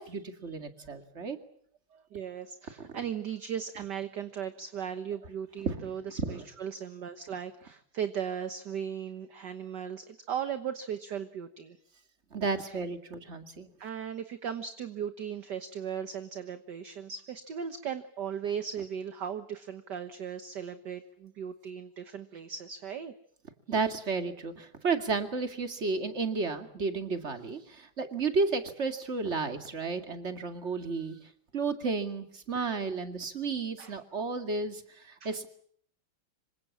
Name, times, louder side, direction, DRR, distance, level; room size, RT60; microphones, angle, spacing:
voice 1, 0.0-1.4 2.8-3.0 5.6-5.9 6.2-6.5 12.3-13.7 23.7-35.5, right 4 dB, 30° right, 7 dB, 2.4 m, -32 dB
voice 2, 1.9-11.8 12.6-12.8 13.8-23.1 33.8-34.0 35.2-35.4, right 8 dB, 55° right, 10 dB, 1.7 m, -37 dB
26.5 x 24.5 x 7.4 m, 0.63 s
omnidirectional pair, 2.4 m